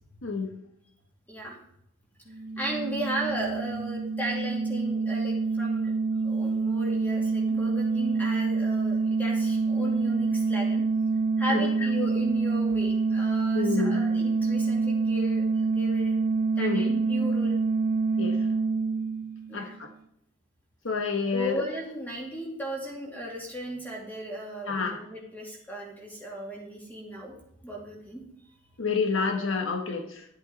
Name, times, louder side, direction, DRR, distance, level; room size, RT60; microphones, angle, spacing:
voice 1, 0.2-0.5 11.5-11.7 13.5-14.0 16.6-16.8 18.2-18.4 19.5-19.9 20.8-21.6 24.7-25.0 28.8-30.2, left 4 dB, 70° left, 4 dB, 1.2 m, -29 dB
sound 1, 2.3-19.8, right 4 dB, 45° right, 1.0 m, -26 dB
voice 2, 2.6-5.9 6.2-10.8 11.4-16.2 16.6-17.6 19.5-19.7 21.3-27.3 27.6-28.2, equal, 10° left, -2 dB, 2.5 m, -36 dB
11.5 x 8.2 x 4.1 m, 0.73 s
head